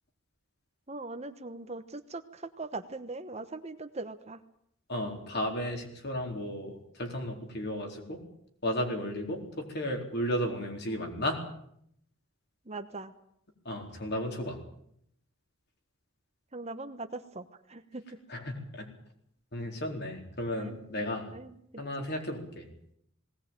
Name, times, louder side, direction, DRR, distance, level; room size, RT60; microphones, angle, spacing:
voice 1, 0.9-4.4 12.6-13.1 16.5-18.2 20.6-20.8 21.3-22.1, right 3 dB, 30° right, 9 dB, 1.1 m, -41 dB
voice 2, 4.9-8.2 8.6-11.4 13.6-14.6 18.3-18.9 19.5-21.3 21.8-22.7, equal, 50° left, 3 dB, 4.3 m, -34 dB
19.5 x 18.5 x 9.1 m, 0.71 s
head